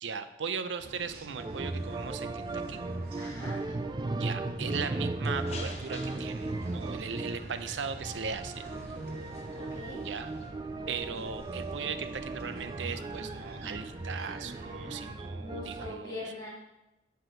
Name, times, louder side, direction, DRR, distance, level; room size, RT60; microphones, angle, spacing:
voice 1, 0.0-2.8 3.7-3.8 4.2-8.6 10.0-10.3 10.9-16.2, right 6 dB, 80° right, 11 dB, 0.6 m, -38 dB
sound 1, 0.8-15.1, right 2 dB, 55° right, 0.8 m, -47 dB
sound 2, 1.4-16.0, right 2 dB, 25° right, 0.3 m, -37 dB
voice 2, 3.2-3.6 9.6-10.0 15.4-16.5, left 2 dB, 20° left, -8 dB, 2.2 m, -41 dB
sound 3, 5.2-10.5, left 3 dB, 35° left, 0.9 m, -51 dB
7.8 x 4.7 x 5.0 m, 0.95 s
head